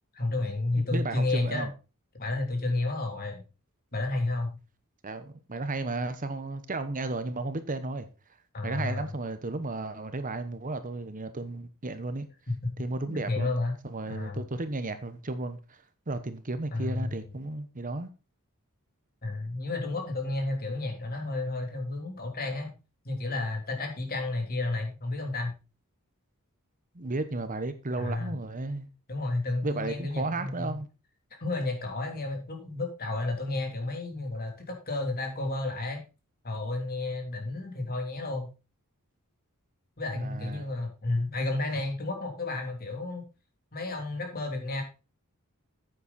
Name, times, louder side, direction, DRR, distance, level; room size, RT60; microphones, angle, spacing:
voice 1, 0.1-1.7 2.2-3.4 3.9-4.6 8.5-9.1 12.5-12.7 13.0-13.7 14.1-14.4 16.7-17.1 19.2-22.7 23.0-25.5 28.0-28.3 29.1-30.7 31.4-36.0 36.4-38.5 40.0-43.2 43.7-44.8, left 2 dB, 45° left, 3.2 m, -31 dB
voice 2, 0.8-1.7 5.0-8.1 8.6-12.3 12.8-13.5 13.8-18.1 26.9-28.9 29.6-30.9 40.1-40.7, right 2 dB, 35° right, 1.0 m, -34 dB
9.8 x 8.5 x 4.1 m
head